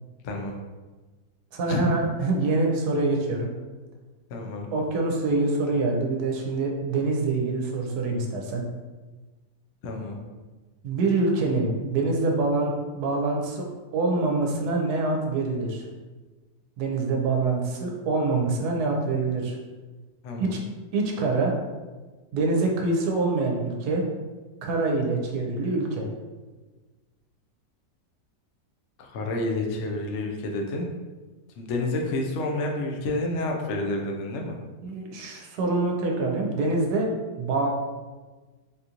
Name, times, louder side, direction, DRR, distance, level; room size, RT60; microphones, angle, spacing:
voice 1, 1.5-3.5 4.7-8.6 10.8-13.7 13.9-15.9 16.8-19.6 20.4-20.6 20.9-21.6 22.3-24.0 24.6-26.1 34.8-37.1 37.4-37.7, right 3 dB, 70° right, 1 dB, 1.1 m, -25 dB
voice 2, 4.3-4.7 9.8-10.2 20.2-20.6 29.0-30.9 31.6-34.6, left 2 dB, 90° left, 1 dB, 0.6 m, -29 dB
3.7 x 2.5 x 2.8 m, 1.3 s
omnidirectional pair, 1.8 m